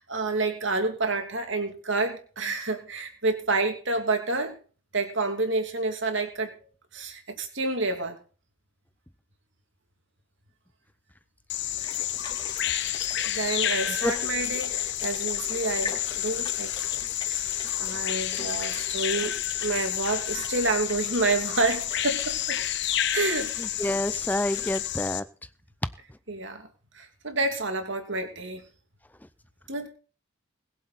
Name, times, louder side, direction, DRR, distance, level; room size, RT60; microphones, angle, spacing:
voice 1, 0.0-4.6 4.9-6.5 6.9-8.2 13.2-17.0 17.3-22.6 23.1-23.5 26.3-26.7 26.9-28.6 29.7-29.9, right 3 dB, 60° right, 5 dB, 2.8 m, -29 dB
Bird vocalization bird call bird song, 11.5-25.2, left 12 dB, 55° left, 1.0 m, -30 dB
sound 1, 11.8-24.8, left 3 dB, 25° left, 3.7 m, -43 dB
voice 2, 23.6-25.2, left 1 dB, 10° left, 13 dB, 0.5 m, -28 dB
21.5 x 7.7 x 4.3 m, 0.38 s
head